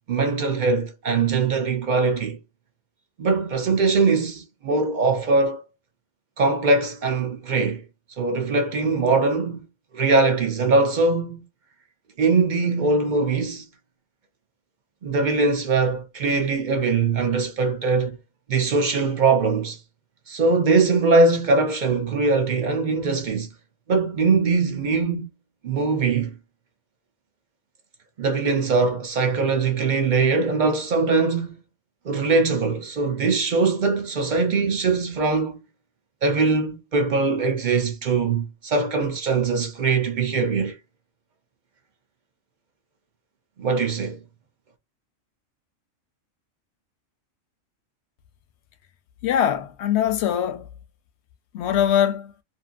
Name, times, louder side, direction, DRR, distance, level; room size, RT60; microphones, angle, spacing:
voice 1, 0.1-2.4 3.2-5.6 6.4-7.8 8.2-9.6 9.9-11.4 12.2-13.6 15.0-18.2 18.5-19.8 20.3-23.5 23.9-25.3 25.6-26.4 28.2-31.6 32.0-35.6 36.2-40.8 43.6-44.2, right 3 dB, 55° right, 0.5 m, -21 dB
voice 2, 49.2-50.7 51.5-52.3, left 10 dB, 65° left, 0.7 m, -22 dB
2.6 x 2.6 x 2.4 m
omnidirectional pair, 1.4 m